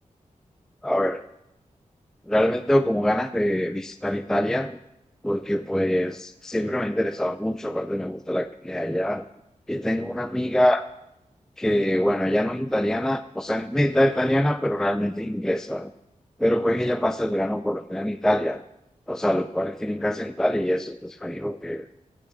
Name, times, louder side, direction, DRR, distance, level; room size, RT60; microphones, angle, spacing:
voice 1, 0.8-1.2 2.3-4.8 5.2-9.2 9.7-10.8 11.6-15.9 16.4-18.6 19.1-21.8, equal, 5° left, 11 dB, 0.4 m, -24 dB
15.5 x 6.2 x 7.0 m, 0.85 s
wide cardioid pair, 130°, 13 cm